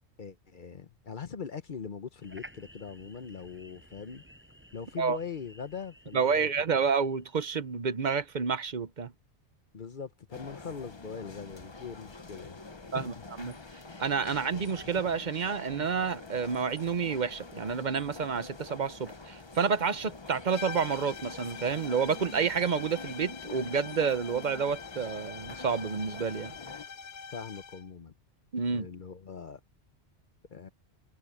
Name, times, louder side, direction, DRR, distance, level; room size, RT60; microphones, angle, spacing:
voice 1, 0.2-4.2 4.7-6.5 9.7-12.6 12.9-13.3 27.3-28.1 28.7-29.6 30.5-30.7, left 6 dB, 50° left, 1.0 m, -41 dB
sound 1, 2.2-7.5, equal, 10° right, 6.4 m, -54 dB
voice 2, 6.1-9.1 12.9-13.6 14.0-26.5 28.5-28.9, right 6 dB, 45° right, 0.9 m, -29 dB
sound 2, 10.3-26.8, left 3 dB, 25° left, 1.0 m, -46 dB
sound 3, 20.5-27.9, left 6 dB, 90° left, 1.3 m, -45 dB
omnidirectional pair, 1.1 m